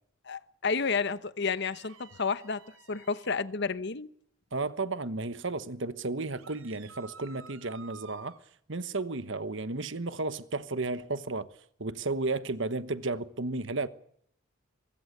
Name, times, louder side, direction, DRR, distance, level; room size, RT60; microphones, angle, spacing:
voice 1, 0.2-2.6 2.9-4.1, left 5 dB, 55° left, 1.0 m, -31 dB
sound 1, 1.7-3.5 6.4-8.4, right 5 dB, 85° right, 3.2 m, -52 dB
voice 2, 4.5-8.4 8.7-11.5 11.8-13.9, right 3 dB, 60° right, 1.3 m, -33 dB
24.0 x 22.0 x 6.8 m
head